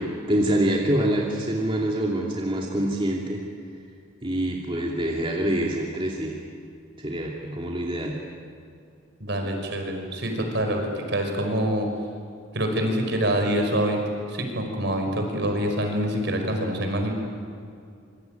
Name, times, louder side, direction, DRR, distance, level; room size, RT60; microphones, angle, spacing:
voice 1, 0.0-3.4 4.2-6.3 7.0-8.1, right 1 dB, 25° right, -2 dB, 2.6 m, -25 dB
voice 2, 9.2-11.9 12.5-14.0 14.3-17.1, right 1 dB, 60° right, 3 dB, 5.5 m, -25 dB
26.0 x 24.5 x 9.2 m, 2.4 s
head